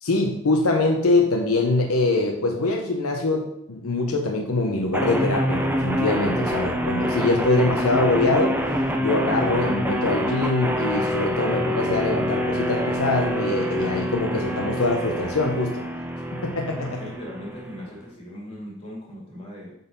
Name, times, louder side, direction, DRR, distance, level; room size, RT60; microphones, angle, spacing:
voice 1, 0.0-8.6 9.0-15.9 16.3-17.0, left 2 dB, 90° left, 2 dB, 0.8 m, -23 dB
sound 1, 4.9-17.9, equal, 10° right, 0.4 m, -26 dB
voice 2, 16.8-19.7, equal, 25° left, -4 dB, 2.1 m, -39 dB
7.9 x 4.0 x 4.0 m, 0.77 s
head